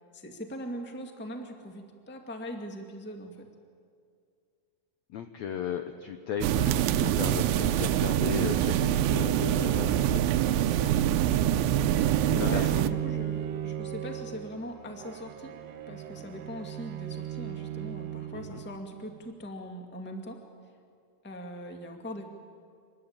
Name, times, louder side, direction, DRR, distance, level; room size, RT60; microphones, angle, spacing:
voice 1, 0.1-3.5 12.3-15.5 15.9-20.4 21.2-22.2, equal, 5° left, 3 dB, 1.1 m, -40 dB
voice 2, 5.1-11.3 12.3-12.6 18.3-18.6, left 8 dB, 75° left, 7 dB, 1.7 m, -36 dB
sound 1, 6.4-12.9, right 11 dB, 85° right, 2.6 m, -25 dB
Bowed string instrument, 11.9-19.0, right 11 dB, 70° right, 2.6 m, -36 dB
25.0 x 20.5 x 8.8 m, 2.3 s
omnidirectional pair, 4.2 m